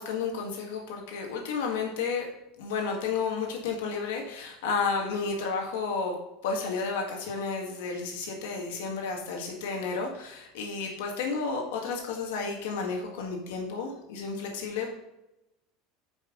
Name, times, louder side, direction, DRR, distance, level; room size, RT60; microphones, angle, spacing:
voice 1, 0.0-2.3 2.6-6.2 6.4-15.0, left 5 dB, 90° left, 1 dB, 1.7 m, -32 dB
9.7 x 5.7 x 3.8 m, 0.95 s
supercardioid pair, 165°, 0 cm